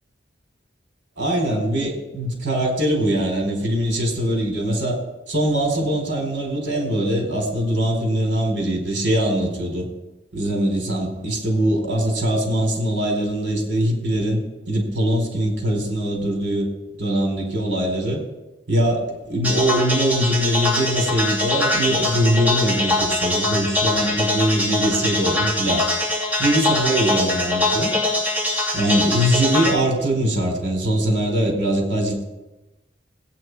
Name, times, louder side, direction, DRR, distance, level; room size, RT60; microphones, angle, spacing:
voice 1, 1.2-5.0 5.3-9.9 10.3-16.7 17.0-18.2 18.7-25.8 26.4-27.9 28.7-32.2, right 1 dB, 80° right, 1 dB, 4.4 m, -22 dB
sound 1, 19.4-29.7, left 2 dB, 10° right, 2.6 m, -22 dB
20.0 x 9.1 x 4.8 m, 1.0 s
head